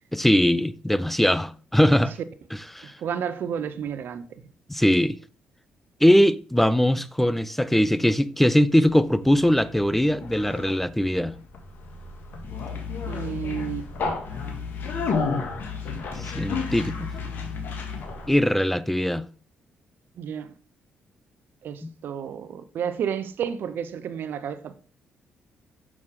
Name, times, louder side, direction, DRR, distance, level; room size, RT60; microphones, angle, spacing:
voice 1, 0.1-2.1 2.7-2.9 4.7-5.2 6.0-11.3 16.2-17.1 18.3-19.2 21.8-21.9, equal, 5° left, 0.5 m, -21 dB
voice 2, 3.0-4.2 13.1-13.9 20.2-20.5 21.6-24.7, right 8 dB, 65° right, 0.8 m, -31 dB
Conversation, 8.9-18.4, left 5 dB, 60° left, 2.0 m, -32 dB
6.3 x 6.1 x 3.7 m
supercardioid pair, 60°, 4 cm